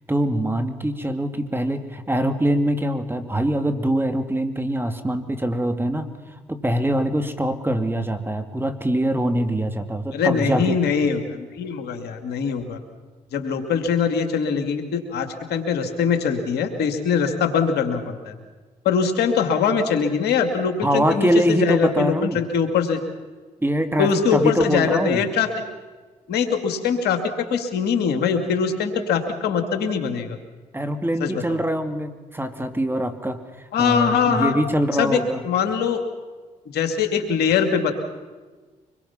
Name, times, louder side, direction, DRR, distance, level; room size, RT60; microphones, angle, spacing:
voice 1, 0.1-6.1 6.5-10.8 20.8-22.4 23.6-25.2 30.7-35.4, right 1 dB, 15° right, 7 dB, 2.7 m, -23 dB
voice 2, 10.1-12.8 13.3-18.3 18.8-23.0 24.0-25.5 26.3-30.4 31.2-31.6 33.7-34.6 35.0-36.0 36.7-37.9, left 6 dB, 80° left, 7 dB, 2.4 m, -22 dB
24.5 x 22.0 x 5.9 m, 1.3 s
supercardioid pair, 55°, 17 cm